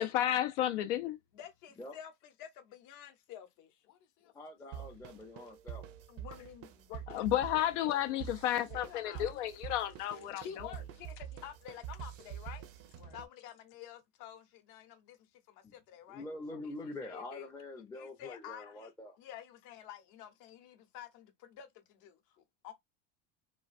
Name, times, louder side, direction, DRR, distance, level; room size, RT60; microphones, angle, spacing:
voice 1, 0.0-1.2 7.1-10.7, left 12 dB, 80° left, 0.6 m, -32 dB
voice 2, 1.3-4.3 6.1-7.7 8.4-9.3 10.1-12.7 13.0-16.2 16.5-16.6 17.0-17.5 17.9-18.9 19.2-22.7, left 10 dB, 60° left, 0.9 m, -50 dB
voice 3, 4.3-5.9 15.6-15.7 16.1-19.2, left 2 dB, 10° left, 0.5 m, -45 dB
sound 1, 4.7-13.3, right 10 dB, 45° right, 0.5 m, -46 dB
3.1 x 2.4 x 2.4 m
supercardioid pair, 125°, 35 cm